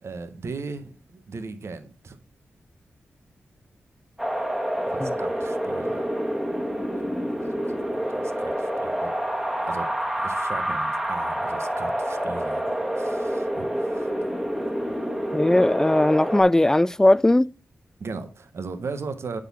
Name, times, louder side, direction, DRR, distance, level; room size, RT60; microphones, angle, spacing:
voice 1, 0.0-2.2 4.9-6.1 7.1-7.6 8.1-9.1 9.6-14.1 18.0-19.4, right 4 dB, 65° right, 1.1 m, -37 dB
Wind, 4.2-16.4, equal, 10° right, 1.8 m, -27 dB
voice 2, 15.3-17.5, left 1 dB, 10° left, 0.3 m, -18 dB
7.9 x 3.8 x 6.1 m
cardioid pair, 45°, 5 cm